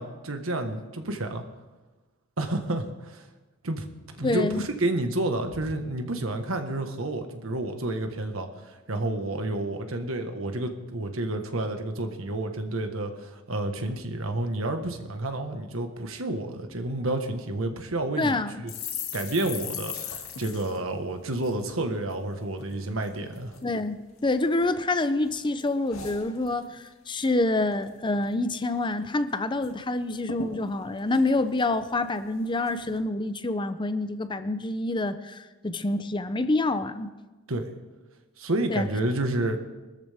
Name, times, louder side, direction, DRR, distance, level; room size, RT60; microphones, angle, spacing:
voice 1, 0.0-1.4 2.4-3.2 3.6-18.7 19.1-23.6 37.5-37.7 38.4-39.6, right 2 dB, 80° right, 1.5 m, -30 dB
voice 2, 4.2-4.6 18.2-18.6 23.6-37.1 38.7-38.9, left 2 dB, 25° left, 0.6 m, -27 dB
sound 1, 18.7-22.2 22.5-22.7 23.0-23.6 24.2-25.0 25.2-26.9 27.2-27.5 27.7-28.3 28.7-28.8 29.0-29.7 30.0-30.1 30.3-32.2 32.6-33.0, left 6 dB, 80° left, 2.4 m, -40 dB
22.5 x 13.5 x 3.6 m
head